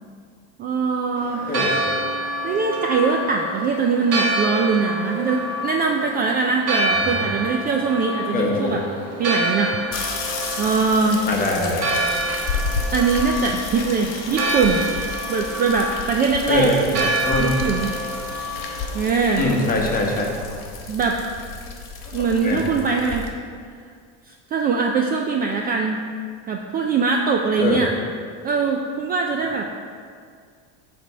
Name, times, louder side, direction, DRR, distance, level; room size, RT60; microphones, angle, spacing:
voice 1, 0.6-1.5 2.4-8.8 9.2-9.8 10.6-11.2 12.9-14.8 15.3-17.1 17.4-17.9 18.9-19.5 20.9-21.2 22.1-23.3 24.3-26.0 26.5-27.9 28.4-29.7, right 4 dB, 25° right, 2 dB, 0.4 m, -22 dB
Church bell, 1.2-20.6, right 1 dB, 45° right, 1.5 m, -28 dB
voice 2, 8.3-8.8 11.3-11.9 16.5-16.8 17.2-17.5 19.4-20.3 22.4-22.6 27.6-27.8, left 2 dB, 25° left, -1 dB, 1.2 m, -22 dB
sound 1, 9.9-23.3, left 4 dB, 50° left, 1.3 m, -32 dB
9.1 x 3.4 x 5.5 m, 2.1 s
supercardioid pair, 135°, 35 cm